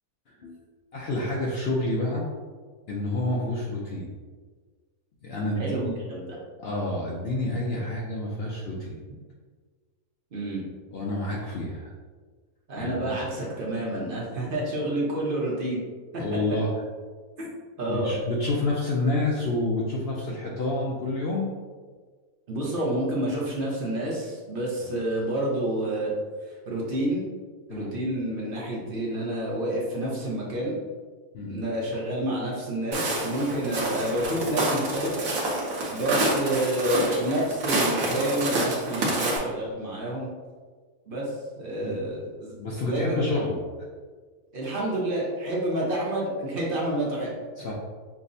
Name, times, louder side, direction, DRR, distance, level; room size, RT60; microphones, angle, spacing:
voice 1, 0.3-0.6 0.9-2.3 2.9-4.1 5.2-5.9 6.6-9.0 10.9-11.9 12.8-12.9 16.2-16.7 17.9-21.5 24.9-25.0 27.7-28.0 31.3-31.6 41.8-41.9 42.6-43.6 47.6-47.7, left 2 dB, 80° left, -3 dB, 0.5 m, -28 dB
voice 2, 10.3-10.7 12.7-15.8 16.1-16.2 17.4-17.5 17.8-18.1 22.5-26.1 26.7-27.2 27.7-30.8 31.4-35.2 35.9-40.3 41.1-42.5 42.8-43.5 44.5-47.3, right 1 dB, 45° right, -4 dB, 0.8 m, -29 dB
Walk footsteps, 32.9-39.4, right 2 dB, 65° right, 1.1 m, -28 dB
5.7 x 2.1 x 2.6 m, 1.5 s
omnidirectional pair, 1.6 m